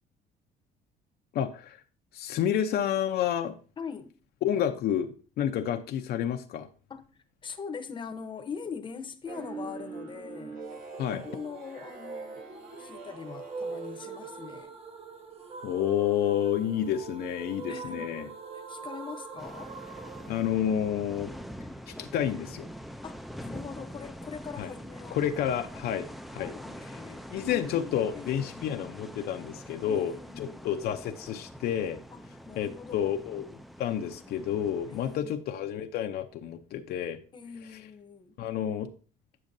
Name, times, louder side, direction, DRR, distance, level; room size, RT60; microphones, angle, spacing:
voice 1, 1.3-1.8 2.1-3.5 4.4-6.7 11.0-11.2 15.6-18.3 20.3-21.3 21.9-22.7 24.6-24.7 25.1-26.1 26.3-26.5 27.3-32.0 32.6-33.5 33.8-37.2 38.4-38.9, left 10 dB, 70° left, 0.6 m, -30 dB
voice 2, 3.8-4.1 6.9-10.6 11.2-12.5 12.8-14.7 17.7-18.1 18.7-19.7 23.0-25.2 26.4-28.8 29.8-30.7 32.1-33.2 34.9-35.3 37.3-38.4, left 6 dB, 30° left, 0.8 m, -42 dB
sound 1, 9.3-14.6, right 4 dB, 55° right, 1.2 m, -41 dB
sound 2, 10.7-21.6, right 5 dB, 35° right, 0.8 m, -45 dB
sound 3, 19.4-35.2, equal, ahead, 0.4 m, -44 dB
8.6 x 6.2 x 2.6 m
cardioid pair, 110°, 17 cm